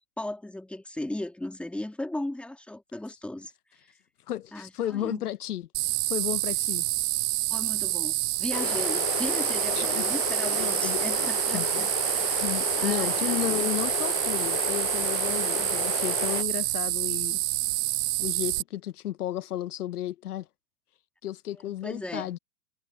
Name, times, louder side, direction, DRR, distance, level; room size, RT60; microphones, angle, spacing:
voice 1, 0.0-3.5 4.5-5.2 7.5-12.4 12.7-13.7 15.3-15.8 21.8-22.4, left 1 dB, ahead, 2.2 m, -37 dB
voice 2, 4.3-5.7 6.1-6.9 9.7-10.1 10.5-11.8 12.4-17.4 18.2-20.5 21.2-22.4, left 12 dB, 80° left, 1.0 m, -33 dB
sound 1, 5.7-18.6, right 19 dB, 50° right, 0.5 m, -28 dB
sound 2, 8.5-16.4, left 19 dB, 40° left, 0.5 m, -33 dB
hypercardioid pair, 125°, 45 cm